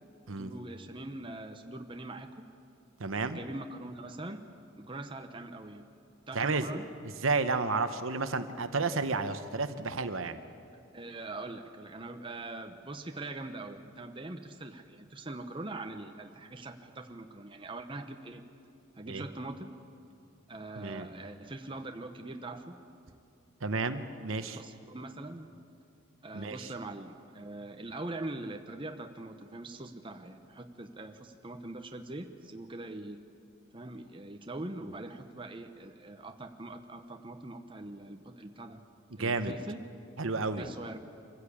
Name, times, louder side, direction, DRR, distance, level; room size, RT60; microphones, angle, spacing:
voice 1, 0.3-2.5 3.2-4.5 4.8-5.9 6.3-6.9 10.9-18.4 19.0-19.8 20.5-22.8 24.4-25.5 26.2-33.2 33.7-38.8 39.2-39.8 40.5-41.0, right 2 dB, 25° right, 5 dB, 0.9 m, -42 dB
voice 2, 3.0-3.4 6.3-6.7 7.2-10.4 19.1-19.2 20.8-21.1 23.6-24.6 26.3-26.7 39.2-39.5 40.2-40.7, right 3 dB, 70° right, 10 dB, 1.0 m, -31 dB
25.0 x 15.0 x 8.5 m, 2.5 s
head